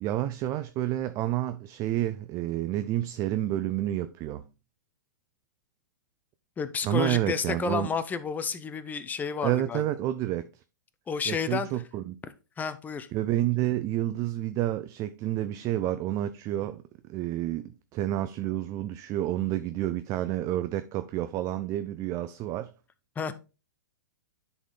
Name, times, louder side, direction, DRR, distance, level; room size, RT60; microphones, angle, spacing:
voice 1, 0.0-4.5 6.8-7.9 9.4-10.5 11.3-12.2 13.1-16.8 17.1-22.7, right 13 dB, 30° right, 0.4 m, -29 dB
voice 2, 6.6-9.8 11.1-11.7 12.6-13.1 23.2-23.3, left 6 dB, 15° left, 0.7 m, -31 dB
10.0 x 4.1 x 3.7 m
hypercardioid pair, 120°, 11 cm